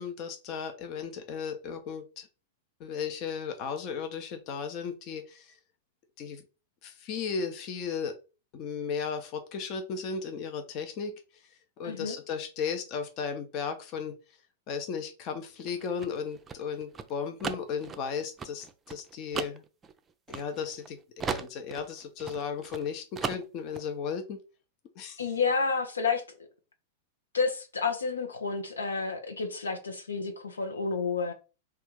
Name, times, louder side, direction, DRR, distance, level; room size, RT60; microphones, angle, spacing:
voice 1, 0.0-2.3 2.8-5.5 6.2-6.4 6.8-8.1 8.5-11.1 11.8-14.2 14.7-19.6 20.3-21.0 21.3-24.4 24.9-25.2, left 6 dB, 40° left, 0.8 m, -35 dB
voice 2, 11.8-12.2 25.2-26.2 27.3-31.3, left 4 dB, 80° left, 0.7 m, -30 dB
sound 1, 15.6-20.9 21.2-22.9 23.1-23.8, right 6 dB, 20° right, 0.4 m, -37 dB
3.5 x 2.4 x 4.5 m
figure-of-eight pair, 95°, 0 cm